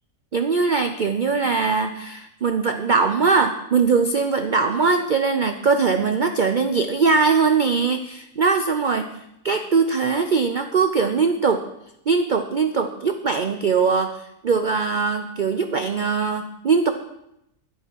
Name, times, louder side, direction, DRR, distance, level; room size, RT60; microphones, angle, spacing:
voice 1, 0.3-9.1 9.4-11.6 12.1-16.9, right 5 dB, 60° right, 7 dB, 0.5 m, -21 dB
12.0 x 11.0 x 4.6 m, 0.81 s
omnidirectional pair, 1.7 m